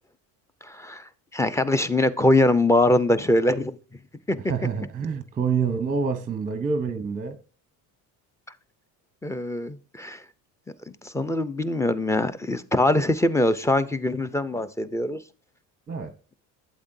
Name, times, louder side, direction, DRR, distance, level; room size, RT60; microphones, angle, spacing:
voice 1, 0.6-1.0 1.3-3.8 4.3-4.5 9.2-10.2 11.0-15.2, left 1 dB, 5° left, 0.6 m, -23 dB
voice 2, 4.5-7.4 15.9-16.1, right 5 dB, 20° right, 0.8 m, -27 dB
8.5 x 8.3 x 2.7 m
supercardioid pair, 90°, 43 cm